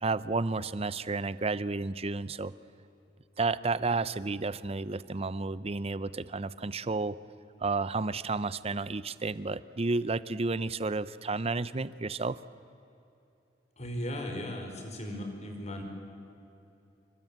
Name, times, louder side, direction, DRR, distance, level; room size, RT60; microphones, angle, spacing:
voice 1, 0.0-2.5 3.4-7.2 7.6-12.4, right 3 dB, 35° right, 16 dB, 0.7 m, -31 dB
voice 2, 13.8-15.8, left 1 dB, 40° left, 4 dB, 5.0 m, -37 dB
27.5 x 24.0 x 9.0 m, 2.8 s
head